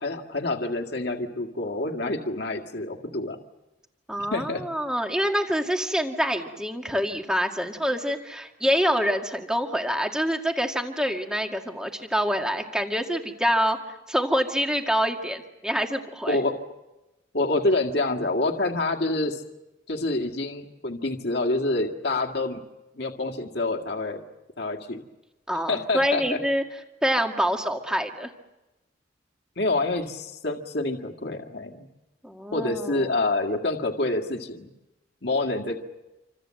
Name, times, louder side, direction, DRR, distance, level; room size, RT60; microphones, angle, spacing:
voice 1, 0.0-3.4 4.3-4.6 16.3-16.5 17.3-19.4 19.9-22.6 22.9-24.2 24.6-25.0 25.7-26.4 29.6-31.9 32.5-34.7 35.2-35.8, left 2 dB, 55° left, 3 dB, 2.0 m, -27 dB
voice 2, 4.1-13.8 14.1-16.4 25.5-26.6 27.0-28.3 32.2-33.1, equal, 5° right, 3 dB, 1.9 m, -26 dB
27.5 x 26.0 x 7.7 m, 1.0 s
head